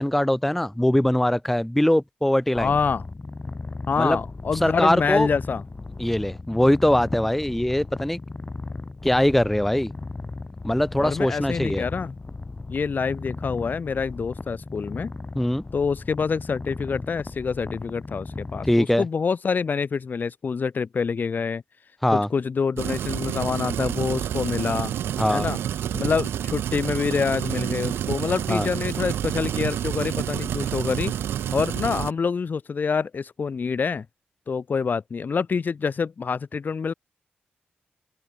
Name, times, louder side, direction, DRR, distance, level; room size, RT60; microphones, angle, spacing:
voice 1, 0.0-2.7 4.0-4.2 4.5-5.3 6.0-8.2 9.0-9.9 10.6-11.8 15.4-15.6 18.6-19.0 22.0-22.3 25.2-25.5 28.5-28.7, left 1 dB, 5° left, 0.5 m, -22 dB
voice 2, 2.5-3.0 3.9-5.6 11.0-12.2 12.7-15.1 15.7-21.6 22.1-24.9 25.3-25.6 25.9-31.1 31.5-34.1 34.5-36.9, left 5 dB, 50° left, 0.6 m, -26 dB
Purr, 2.6-18.7, left 3 dB, 35° left, 5.5 m, -36 dB
sound 1, 22.8-32.1, right 10 dB, 85° right, 0.4 m, -28 dB
cardioid pair, 55°, 4 cm